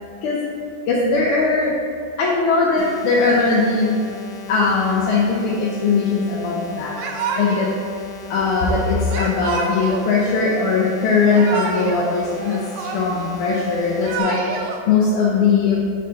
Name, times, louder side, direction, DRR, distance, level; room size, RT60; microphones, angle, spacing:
voice 1, 0.9-1.8 2.2-4.0 4.5-6.9 7.4-7.7 8.3-14.4 14.9-15.8, left 4 dB, 90° left, -4 dB, 1.7 m, -19 dB
sound 1, 2.8-14.2, left 6 dB, 70° left, 1.1 m, -37 dB
Yell / Crying sobbing, 7.0-7.8 9.1-10.1 11.1-12.0 12.3-13.3 13.8-14.8, right 4 dB, 85° right, 1.6 m, -27 dB
6.5 x 5.5 x 3.9 m, 2.3 s
omnidirectional pair, 2.3 m